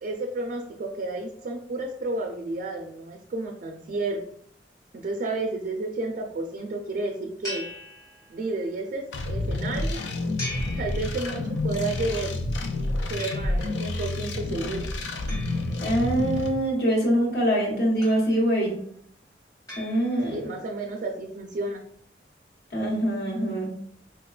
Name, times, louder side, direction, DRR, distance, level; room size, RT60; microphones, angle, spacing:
voice 1, 0.0-4.2 4.9-7.7 8.3-10.0 10.7-12.4 13.1-14.9 20.3-21.8, right 2 dB, 50° right, 2 dB, 0.4 m, -31 dB
Metal Bell, 7.4-8.7 10.4-11.7 13.2-13.9 15.3-16.4 18.0-18.7 19.7-20.6, left 1 dB, 20° left, 1.0 m, -41 dB
sound 1, 9.1-16.5, left 2 dB, 90° left, 0.4 m, -29 dB
voice 2, 15.8-18.8 19.7-20.4 22.7-23.7, right 1 dB, 65° left, -4 dB, 1.1 m, -24 dB
4.2 x 2.2 x 2.3 m, 0.66 s
head